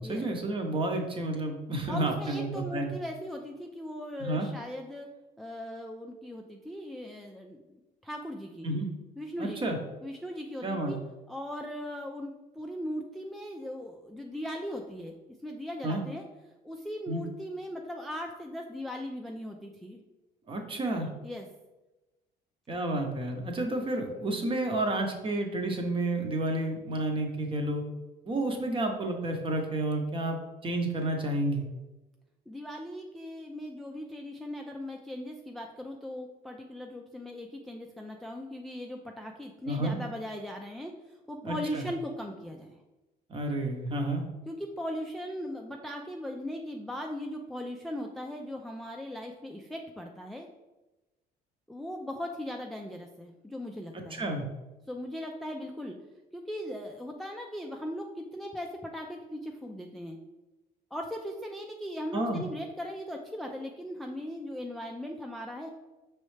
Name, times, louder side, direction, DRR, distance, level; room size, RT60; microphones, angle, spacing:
voice 1, 0.0-2.9 4.2-4.5 8.6-8.9 9.4-9.8 10.6-11.0 15.8-16.0 17.1-17.2 20.5-21.1 22.7-27.8 28.2-31.6 39.7-39.9 41.4-41.9 43.3-44.2 54.2-54.4 62.1-62.4, right 2 dB, 30° right, 4 dB, 0.8 m, -30 dB
voice 2, 1.9-5.1 5.4-8.7 9.2-9.8 10.0-11.0 11.3-15.1 15.4-16.3 16.6-20.0 21.2-21.5 32.5-42.8 44.5-50.5 51.7-54.2 54.9-56.0 56.3-60.2 60.9-65.7, equal, ahead, 2 dB, 0.3 m, -39 dB
5.3 x 3.1 x 3.2 m, 1.1 s
cardioid pair, 110°, 17 cm